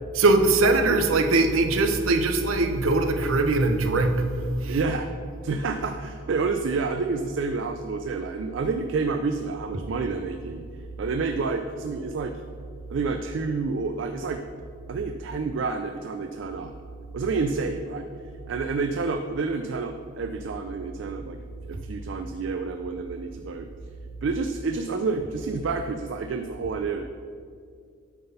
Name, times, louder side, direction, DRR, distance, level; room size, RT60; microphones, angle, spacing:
voice 1, 0.1-4.8, right 2 dB, 90° right, 6 dB, 0.7 m, -21 dB
voice 2, 4.7-5.1 5.4-10.6 11.0-12.4 12.9-14.4 14.9-16.7 17.1-18.0 18.5-21.4 21.7-23.7 24.2-27.0, right 4 dB, 65° right, 7 dB, 0.4 m, -29 dB
8.8 x 3.9 x 5.5 m, 2.2 s
head